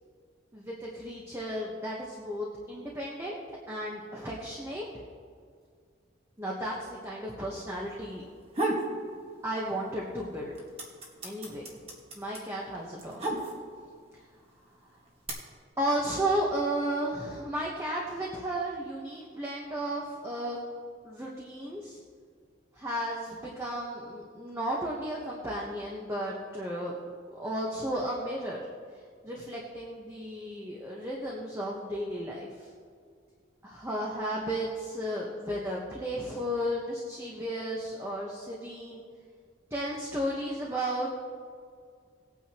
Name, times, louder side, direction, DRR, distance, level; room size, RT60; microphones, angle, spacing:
voice 1, 0.5-3.4 3.7-4.8 6.4-8.2 9.4-10.5 11.2-11.7 12.2-13.3 15.8-20.6 21.0-22.0 22.7-26.9 27.4-28.6 29.2-32.7 33.6-39.0 39.7-41.1, right 1 dB, 15° right, -3 dB, 1.1 m, -34 dB
sound 1, 8.3-8.9 9.3-10.0 10.3-13.9 14.7-15.3, right 2 dB, 30° right, 1.6 m, -33 dB
18.5 x 9.2 x 2.9 m, 2.1 s
head